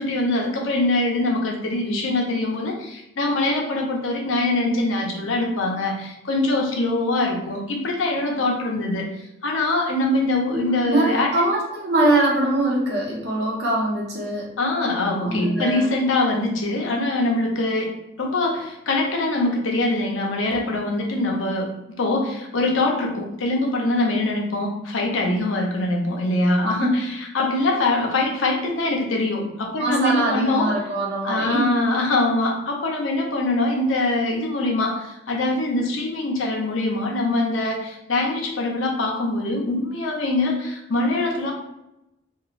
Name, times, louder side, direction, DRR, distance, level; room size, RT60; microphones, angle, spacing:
voice 1, 0.0-9.1 9.4-11.3 14.6-17.9 18.2-21.7 22.0-30.7 31.2-41.5, left 2 dB, 80° left, 1 dB, 0.6 m, -23 dB
voice 2, 10.5-14.5 15.2-15.9 26.6-27.0 29.8-31.8, right 1 dB, 55° right, -4 dB, 0.8 m, -23 dB
2.9 x 2.3 x 2.4 m, 0.88 s
head